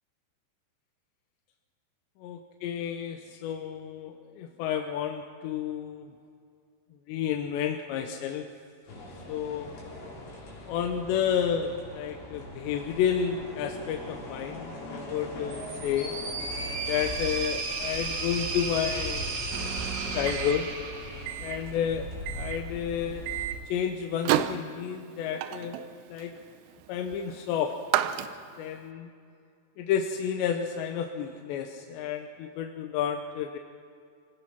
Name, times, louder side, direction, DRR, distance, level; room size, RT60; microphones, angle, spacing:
voice 1, 2.2-6.1 7.1-8.5 9.3-9.7 10.6-16.1 16.9-19.4 20.1-20.7 21.4-23.3 23.7-25.8 26.1-26.3 26.9-27.7 28.6-29.1 29.8-33.6, left 8 dB, 80° left, 4 dB, 3.1 m, -31 dB
sound 1, 8.9-23.5, equal, 60° left, 5.6 m, -40 dB
sound 2, 15.5-21.7, right 3 dB, 60° right, 1.1 m, -34 dB
Microwave oven, 19.5-28.8, right 12 dB, 90° right, 3.1 m, -34 dB
26.5 x 18.0 x 5.9 m, 2.3 s
omnidirectional pair, 5.1 m